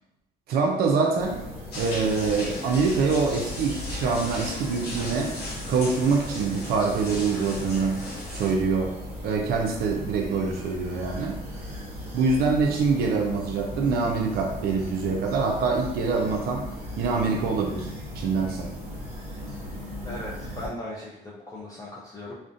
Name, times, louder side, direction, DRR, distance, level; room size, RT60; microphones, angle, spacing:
voice 1, 0.5-1.4 1.8-5.4 5.7-8.0 8.3-9.0 9.2-11.4 12.1-16.6 17.0-17.9 18.2-18.7, right 4 dB, 65° right, 1 dB, 0.4 m, -25 dB
sound 1, 1.2-20.7, equal, 35° right, 1.2 m, -38 dB
sound 2, 1.7-8.5, left 1 dB, 70° left, 0.9 m, -37 dB
voice 2, 20.0-22.3, left 1 dB, 20° left, -6 dB, 0.4 m, -38 dB
2.5 x 2.1 x 2.5 m, 0.88 s
cardioid pair, 110°, 17 cm